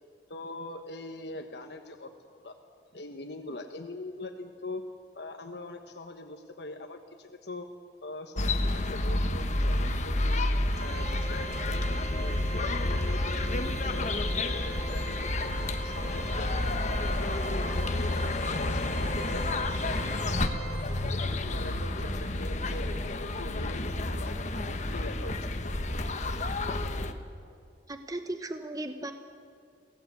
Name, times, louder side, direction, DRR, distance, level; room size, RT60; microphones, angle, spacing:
voice 1, 0.3-2.6 2.9-4.8 5.1-7.7 8.0-10.4 10.8-12.0 12.5-14.1 14.4-16.8 17.1-18.1 18.5-22.9 23.2-24.4 24.6-25.5 26.0-26.2, left 2 dB, 70° left, 5 dB, 1.2 m, -42 dB
sound 1, 8.4-27.1, left 2 dB, 45° left, 1.3 m, -30 dB
Organ, 10.7-21.3, right 6 dB, 90° right, 3.7 m, -43 dB
voice 2, 27.9-29.1, right 1 dB, 20° right, 7 dB, 1.0 m, -36 dB
23.5 x 17.5 x 8.4 m, 2.5 s
head